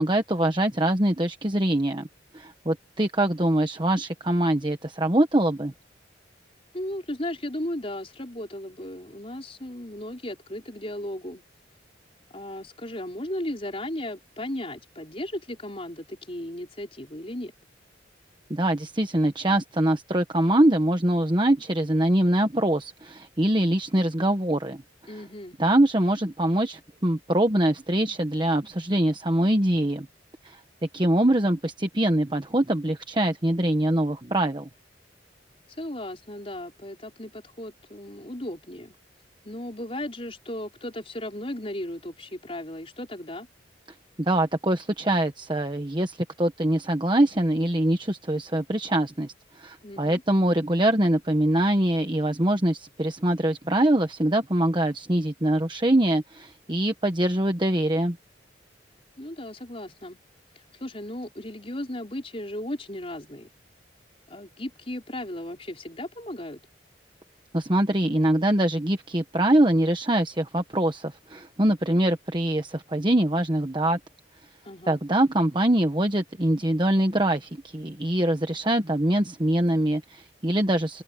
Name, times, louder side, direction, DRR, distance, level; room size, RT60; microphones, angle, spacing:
voice 1, 0.0-2.1 2.3-5.7 18.5-24.8 25.6-30.1 30.4-30.6 30.9-34.7 44.2-58.2 67.5-74.0 74.9-81.0, right 1 dB, 25° right, 1.2 m, -23 dB
voice 2, 6.7-11.4 12.3-17.5 25.1-25.6 35.7-39.0 39.4-43.5 49.8-50.2 59.2-60.2 60.5-63.5 64.3-66.6 74.6-75.0, left 1 dB, 30° left, 5.0 m, -36 dB
head